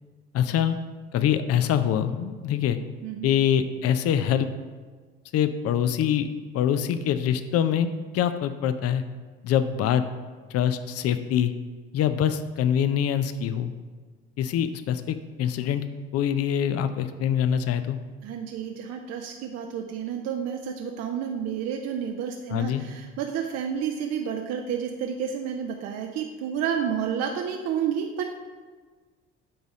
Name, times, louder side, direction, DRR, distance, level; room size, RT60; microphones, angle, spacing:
voice 1, 0.3-0.8 1.1-2.8 3.2-4.5 5.3-6.3 6.5-7.9 8.1-9.0 9.4-10.0 10.5-11.5 11.9-13.7 14.4-15.8 16.1-18.0 22.5-22.8, left 9 dB, 50° left, 11 dB, 0.6 m, -24 dB
voice 2, 18.2-28.4, right 8 dB, 55° right, 3 dB, 0.6 m, -30 dB
7.9 x 4.1 x 4.9 m, 1.5 s
hypercardioid pair, 55°, 32 cm